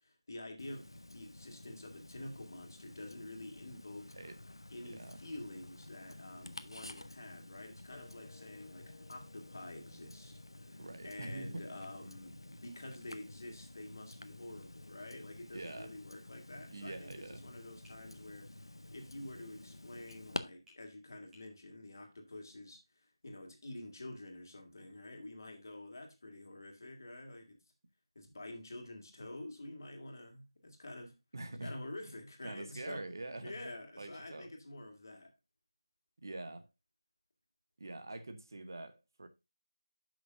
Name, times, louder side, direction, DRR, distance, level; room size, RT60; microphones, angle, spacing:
voice 1, 0.0-4.2 4.7-27.6 28.1-31.2 31.6-33.0 33.4-35.3, left 1 dB, 40° left, 2.3 m, -48 dB
Tick-tock, 0.6-20.4, left 1 dB, 65° left, 0.8 m, -51 dB
voice 2, 4.8-5.2 10.8-11.8 15.5-15.9 16.7-17.4 31.3-31.8 32.4-33.6 34.0-34.5 36.2-36.7 37.8-39.3, right 2 dB, 45° right, 1.0 m, -45 dB
sound 1, 7.9-13.0, left 5 dB, 20° left, 0.9 m, -64 dB
Tap, 15.6-15.9 17.8-18.0 20.1-20.3 20.7-20.8 21.3-21.5, left 2 dB, 5° right, 1.4 m, -63 dB
10.5 x 6.2 x 2.5 m
figure-of-eight pair, 165°, 3 cm